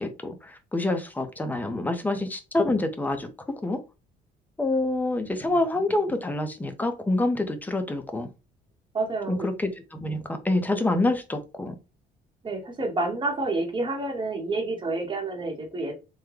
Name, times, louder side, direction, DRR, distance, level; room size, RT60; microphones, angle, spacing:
voice 1, 0.0-3.8 4.6-8.3 9.3-11.7, left 2 dB, 10° left, 0.6 m, -27 dB
voice 2, 8.9-9.5 12.4-15.9, right 2 dB, 30° right, 0.9 m, -29 dB
3.6 x 2.1 x 3.2 m
cardioid pair, 110°, 17 cm